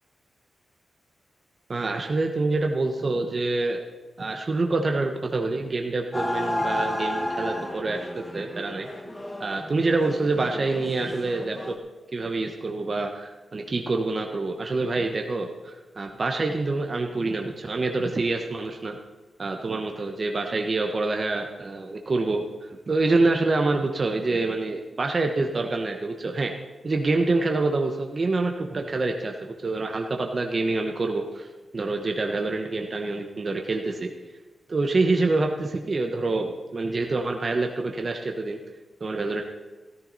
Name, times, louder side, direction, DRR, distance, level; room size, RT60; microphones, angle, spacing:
voice 1, 1.7-3.8 4.2-8.9 9.4-11.8 12.1-19.0 19.4-26.5 26.8-31.5 31.7-34.1 34.7-38.6 39.0-39.4, right 3 dB, 45° right, 3 dB, 1.1 m, -26 dB
sound 1, 6.1-11.8, left 1 dB, 20° left, 1.6 m, -32 dB
13.5 x 13.5 x 4.1 m, 1.2 s
cardioid pair, 85°, 0 cm